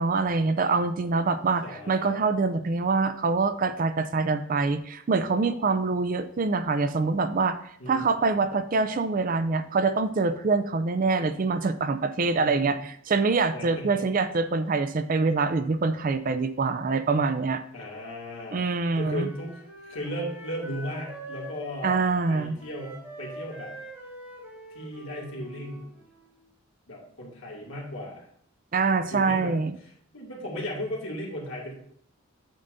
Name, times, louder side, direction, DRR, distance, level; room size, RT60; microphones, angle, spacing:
voice 1, 0.0-7.6 7.9-12.8 13.1-17.6 18.5-19.3 21.8-22.6 28.7-29.7, right 4 dB, 40° right, 11 dB, 0.4 m, -25 dB
voice 2, 1.6-2.2 7.8-8.2 12.4-12.8 13.5-14.0 17.7-18.6 19.0-23.7 24.7-25.9 26.9-28.3 29.1-29.5 29.8-31.8, equal, 60° left, -3 dB, 2.3 m, -36 dB
Wind instrument woodwind instrument, 19.2-26.4, right 1 dB, 10° right, 3.0 m, -45 dB
8.8 x 6.7 x 2.6 m, 0.64 s
head